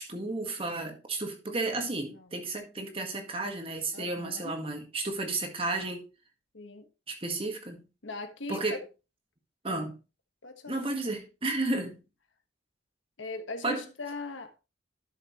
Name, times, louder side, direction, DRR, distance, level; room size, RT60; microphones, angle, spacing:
voice 1, 0.0-6.0 7.1-7.8 8.5-8.8 9.6-9.9 10.7-12.0 13.6-13.8, right 2 dB, 30° right, 1.7 m, -32 dB
voice 2, 3.9-4.5 6.5-6.8 8.0-8.8 9.7-9.8 10.4-10.8 13.2-14.6, left 2 dB, 75° left, 1.3 m, -40 dB
12.0 x 6.5 x 3.0 m
head